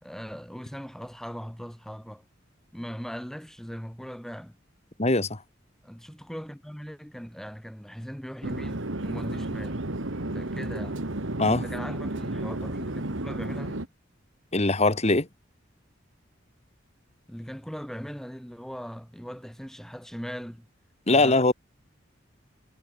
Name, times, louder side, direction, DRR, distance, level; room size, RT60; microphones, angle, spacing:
voice 1, 0.0-2.2 2.7-4.6 5.8-9.8 10.3-11.1 11.6-13.9 17.3-20.7 21.1-21.5, equal, ahead, 5.1 m, -39 dB
voice 2, 5.0-5.4 11.4-11.6 14.5-15.3 21.1-21.5, left 2 dB, 35° left, 2.4 m, -21 dB
Chatter / Fixed-wing aircraft airplane, 8.4-13.9, right 1 dB, 85° right, 2.1 m, -32 dB
head